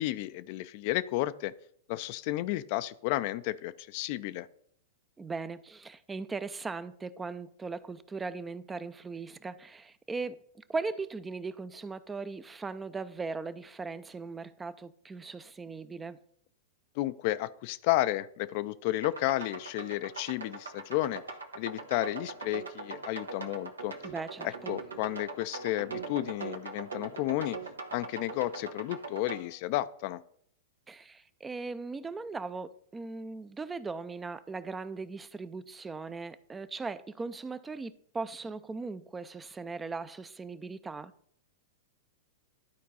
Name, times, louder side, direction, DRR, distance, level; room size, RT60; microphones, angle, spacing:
voice 1, 0.0-1.5 1.9-4.5 17.0-21.2 21.6-23.9 24.4-27.6 27.9-30.2, left 16 dB, 50° left, 0.4 m, -32 dB
voice 2, 5.2-10.4 10.7-16.2 24.0-24.5 30.9-41.1, right 4 dB, 15° right, 0.4 m, -38 dB
sound 1, 19.0-29.4, right 4 dB, 85° right, 1.0 m, -41 dB
11.5 x 4.5 x 4.1 m
hypercardioid pair, 105°, 0 cm